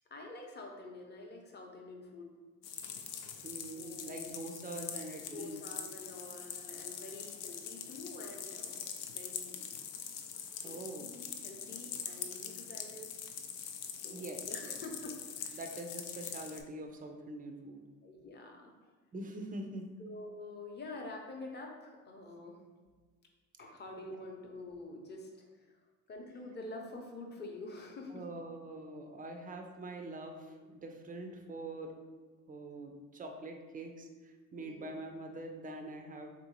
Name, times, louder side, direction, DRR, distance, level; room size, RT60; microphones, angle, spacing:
voice 1, 0.1-2.3 3.6-4.4 5.1-9.9 10.2-10.3 10.6-13.3 13.9-15.6 18.0-18.9 20.0-22.6 23.6-28.8 34.6-34.9, left 2 dB, 25° left, 1 dB, 0.7 m, -48 dB
sound 1, 2.6-16.6, left 8 dB, 80° left, 0.5 m, -43 dB
voice 2, 3.4-5.6 10.6-11.1 14.1-14.8 15.5-17.9 19.1-19.9 28.1-31.9 32.5-36.3, right 2 dB, 20° right, 4 dB, 0.4 m, -44 dB
3.5 x 2.6 x 2.9 m, 1.4 s
hypercardioid pair, 70°, 41 cm